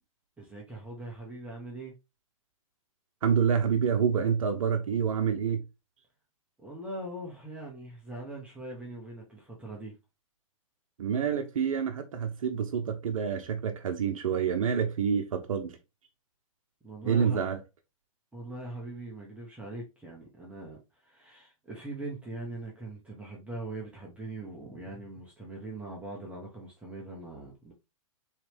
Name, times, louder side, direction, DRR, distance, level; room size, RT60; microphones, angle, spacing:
voice 1, 0.4-1.9 6.6-9.9 16.8-17.4 18.3-27.7, right 2 dB, 5° right, 1.2 m, -41 dB
voice 2, 3.2-5.6 11.0-15.8 17.0-17.6, right 7 dB, 75° right, 0.9 m, -27 dB
4.4 x 3.3 x 3.4 m
hypercardioid pair, 130°, 17 cm